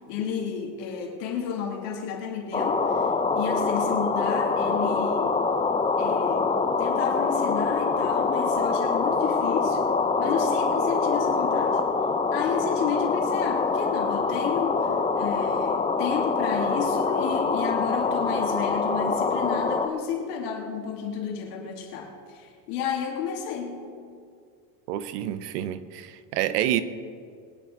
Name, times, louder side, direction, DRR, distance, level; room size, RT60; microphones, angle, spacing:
voice 1, 0.1-5.4 6.0-6.5 6.8-9.8 10.2-11.8 12.3-24.0, left 7 dB, 80° left, 0 dB, 3.0 m, -32 dB
sound 1, 2.5-19.9, left 4 dB, 15° left, 0.8 m, -25 dB
voice 2, 24.9-26.8, right 12 dB, 85° right, 13 dB, 1.0 m, -28 dB
22.5 x 10.0 x 4.0 m, 2.3 s
supercardioid pair, 105°, 47 cm